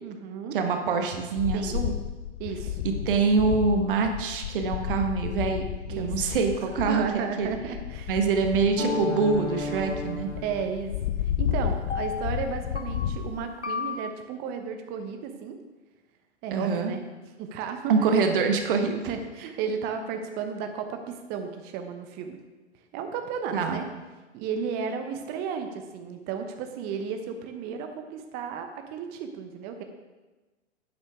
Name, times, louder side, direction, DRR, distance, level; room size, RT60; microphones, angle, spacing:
voice 1, 0.0-0.5 1.5-1.8 2.4-2.8 5.9-8.2 10.4-10.9 11.4-15.6 16.4-17.0 17.4-17.9 19.1-22.4 22.9-23.8 24.3-29.8, right 6 dB, 25° right, 6 dB, 1.0 m, -34 dB
voice 2, 0.5-1.9 2.8-5.7 6.0-7.0 7.4-7.5 8.1-10.3 16.5-16.9 17.9-18.9 23.5-23.8, right 4 dB, 50° right, 5 dB, 1.4 m, -25 dB
sound 1, 1.4-13.5, left 10 dB, 40° left, 0.5 m, -32 dB
sound 2, 8.8-11.1 11.9-14.1, left 3 dB, 85° left, 1.2 m, -33 dB
11.5 x 9.0 x 3.6 m, 1.2 s
figure-of-eight pair, 110°, 34 cm